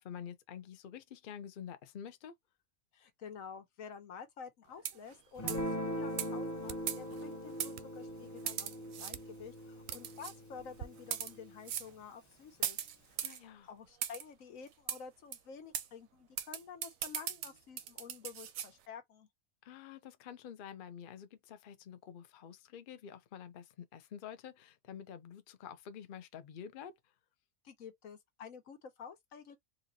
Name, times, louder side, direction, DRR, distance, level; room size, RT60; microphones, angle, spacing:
voice 1, 0.0-2.3 13.2-13.7 19.6-27.1, left 8 dB, 55° left, 0.6 m, -48 dB
voice 2, 2.9-12.8 13.2-13.3 13.6-19.3 27.6-29.6, left 6 dB, 80° left, 1.3 m, -50 dB
sound 1, 4.8-5.1 5.5-5.7 6.2-6.3 6.9-7.2 7.6-7.7 8.5-9.1 9.9-10.3 11.0-11.3 11.7-11.9 12.6-13.4 14.0-14.2 14.9-15.0 15.3-15.4 15.7-15.9 16.4-18.7, right 10 dB, 85° right, 1.0 m, -38 dB
sound 2, 5.3-10.9, right 11 dB, 65° right, 0.7 m, -54 dB
Guitar, 5.4-12.0, equal, 15° left, 0.8 m, -41 dB
3.9 x 2.5 x 2.7 m
omnidirectional pair, 1.4 m